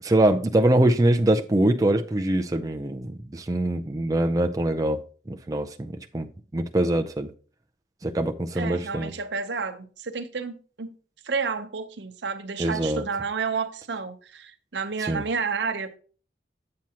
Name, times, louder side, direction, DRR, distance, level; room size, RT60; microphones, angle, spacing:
voice 1, 0.0-5.0 5.3-6.3 6.5-7.3 8.0-9.1 12.6-13.0 15.0-15.2, right 1 dB, 20° right, 0.4 m, -23 dB
voice 2, 8.5-10.9 11.2-16.0, right 5 dB, 80° right, 0.8 m, -30 dB
8.6 x 7.4 x 2.9 m
head